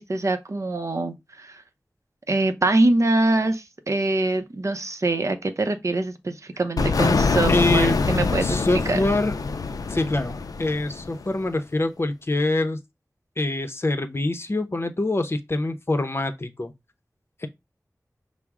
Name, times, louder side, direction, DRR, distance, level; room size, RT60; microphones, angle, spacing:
voice 1, 0.0-1.6 2.3-9.0, right 2 dB, 55° right, 0.6 m, -24 dB
sound 1, 6.8-11.4, left 4 dB, 90° left, 0.4 m, -24 dB
voice 2, 7.5-8.0 8.4-9.4 9.9-12.8 13.4-16.7 17.4-17.5, left 2 dB, 45° left, 0.6 m, -25 dB
5.9 x 2.0 x 3.5 m
wide cardioid pair, 60°, 6 cm